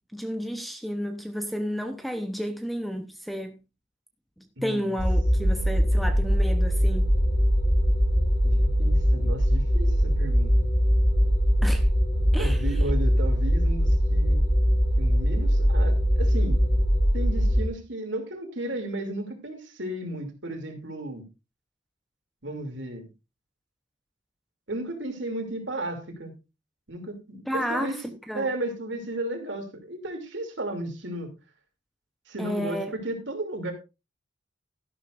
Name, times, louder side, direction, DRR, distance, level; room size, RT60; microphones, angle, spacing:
voice 1, 0.1-3.6 4.4-7.1 11.6-11.9 12.3-12.8 27.5-28.5 32.4-32.9, equal, ahead, 0.8 m, -32 dB
voice 2, 4.6-4.9 8.4-10.7 12.4-14.4 15.0-16.6 17.1-21.2 22.4-23.0 24.7-26.3 26.9-31.3 32.3-33.7, right 1 dB, 65° right, 2.9 m, -34 dB
sound 1, 5.0-17.6, equal, 40° left, 2.8 m, -22 dB
12.5 x 11.5 x 2.6 m
head